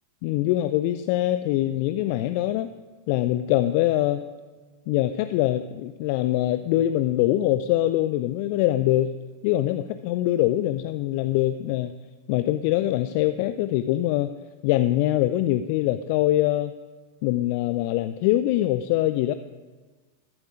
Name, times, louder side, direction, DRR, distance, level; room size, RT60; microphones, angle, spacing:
voice 1, 0.2-2.7 3.1-4.2 4.9-9.1 9.4-11.9 12.3-14.3 14.6-16.7 17.2-19.3, left 14 dB, 45° left, 12 dB, 0.4 m, -23 dB
14.0 x 11.5 x 5.0 m, 1.3 s
figure-of-eight pair, 90°, 0 cm